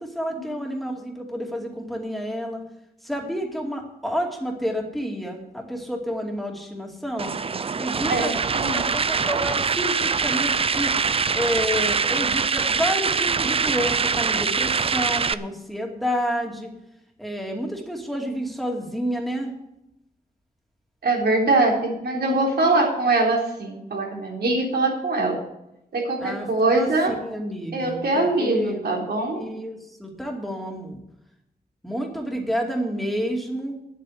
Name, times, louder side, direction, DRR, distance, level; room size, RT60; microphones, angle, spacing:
voice 1, 0.0-2.6 3.0-7.3 7.8-8.3 8.7-10.9 11.3-16.7 17.2-19.5 26.2-28.9 29.3-31.0 31.8-33.8, equal, ahead, 1 dB, 2.5 m, -29 dB
sound 1, 7.2-15.3, right 5 dB, 35° right, 0.4 m, -23 dB
voice 2, 8.1-8.8 21.0-25.4 25.9-27.1 27.7-29.4, right 2 dB, 80° right, -1 dB, 3.6 m, -22 dB
10.5 x 8.3 x 7.9 m, 0.84 s
wide cardioid pair, 145°, 16 cm